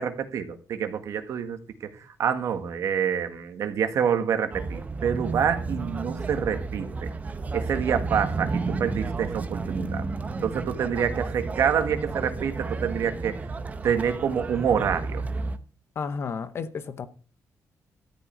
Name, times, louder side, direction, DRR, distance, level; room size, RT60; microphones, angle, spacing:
voice 1, 0.0-1.6 2.2-7.1 7.5-10.0 10.4-13.4 13.8-15.2, right 7 dB, 65° right, 1.7 m, -27 dB
sound 1, 4.5-15.6, right 4 dB, 25° right, 0.9 m, -32 dB
voice 2, 16.0-17.1, left 5 dB, 45° left, 0.9 m, -32 dB
13.5 x 5.4 x 8.8 m
wide cardioid pair, 155°, 6 cm